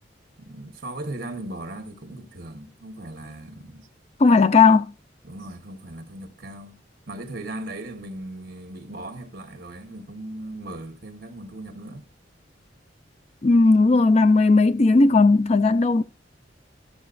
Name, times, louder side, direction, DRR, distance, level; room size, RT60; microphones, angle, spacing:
voice 1, 0.4-3.9 5.2-12.0, right 1 dB, 55° right, 1.3 m, -38 dB
voice 2, 4.2-4.9 13.4-16.0, left 3 dB, 35° left, 0.4 m, -16 dB
14.0 x 6.9 x 2.5 m
head